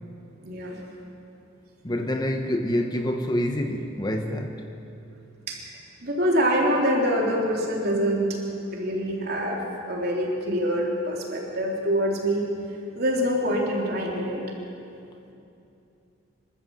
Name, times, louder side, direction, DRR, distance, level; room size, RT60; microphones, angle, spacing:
voice 1, 0.4-0.9 5.5-5.6 6.0-8.3 8.7-12.5 13.0-14.4, equal, 50° right, -2 dB, 3.6 m, -25 dB
voice 2, 1.8-4.6, left 1 dB, 20° left, 4 dB, 1.0 m, -27 dB
25.5 x 13.5 x 7.8 m, 2.7 s
head